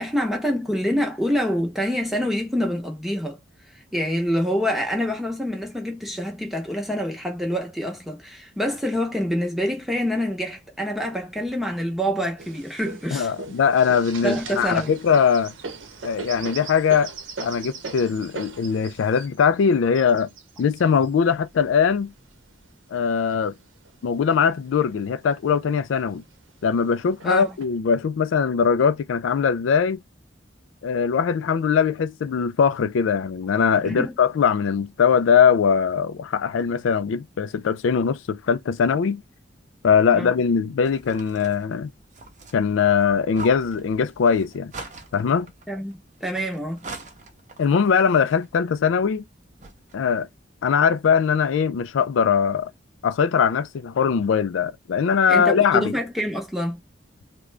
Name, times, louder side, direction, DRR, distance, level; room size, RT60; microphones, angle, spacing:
voice 1, 0.0-3.4 3.9-13.3 14.2-15.0 27.2-27.6 33.8-34.2 40.1-40.4 45.7-46.8 55.3-56.8, equal, ahead, 0.8 m, -26 dB
sound 1, 12.4-22.7 23.3-24.2 24.7-24.8 25.0-25.7 26.5-26.6 27.2-27.6, right 4 dB, 85° right, 0.7 m, -39 dB
voice 2, 13.1-15.5 16.0-17.1 17.4-20.3 20.6-22.1 22.9-23.5 24.0-26.2 26.6-30.0 30.8-39.2 39.8-41.9 42.5-44.7 45.1-45.5 47.6-49.2 49.9-50.3 50.6-52.7 53.0-55.9, left 6 dB, 90° left, 0.4 m, -21 dB
sound 2, 40.8-50.1, right 3 dB, 40° right, 0.7 m, -44 dB
3.7 x 2.2 x 3.2 m
head